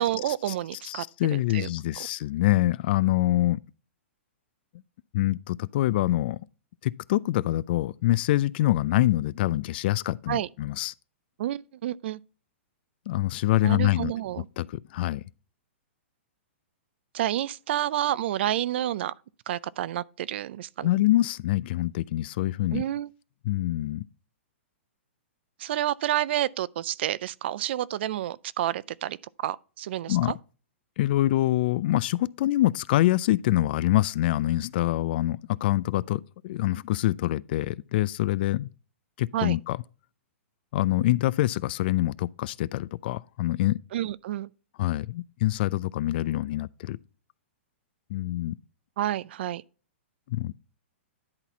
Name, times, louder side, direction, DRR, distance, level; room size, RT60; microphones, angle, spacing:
voice 1, 0.0-1.0 1.3-1.7 10.3-10.5 11.4-12.2 13.6-14.5 17.1-19.1 19.5-20.9 22.7-23.1 25.6-29.2 29.4-30.4 39.3-39.6 43.9-44.5 49.0-49.6, right 12 dB, 60° right, 0.4 m, -29 dB
voice 2, 0.8-3.6 5.1-6.4 6.8-10.9 13.1-14.1 14.6-15.2 20.8-22.8 23.5-24.0 30.1-30.3 31.0-38.7 39.2-39.8 40.7-43.8 44.8-47.0 48.1-48.6 50.3-50.5, left 15 dB, 50° left, 0.3 m, -25 dB
10.5 x 4.1 x 4.4 m
hypercardioid pair, 140°, 7 cm